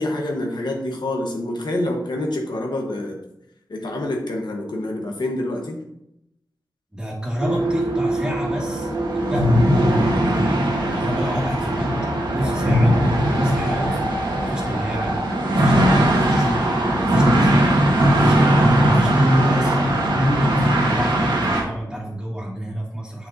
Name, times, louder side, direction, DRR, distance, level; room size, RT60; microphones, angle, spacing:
voice 1, 0.0-3.2 3.7-5.8, left 1 dB, 70° left, 1 dB, 1.1 m, -26 dB
voice 2, 6.9-11.9 12.3-13.0 13.3-14.1 14.4-17.8 18.1-18.5 18.9-23.3, equal, 10° right, -3 dB, 2.1 m, -28 dB
sound 1, 7.4-21.6, right 1 dB, 80° right, 1.4 m, -19 dB
6.8 x 5.8 x 2.7 m, 0.81 s
wide cardioid pair, 60°, 8 cm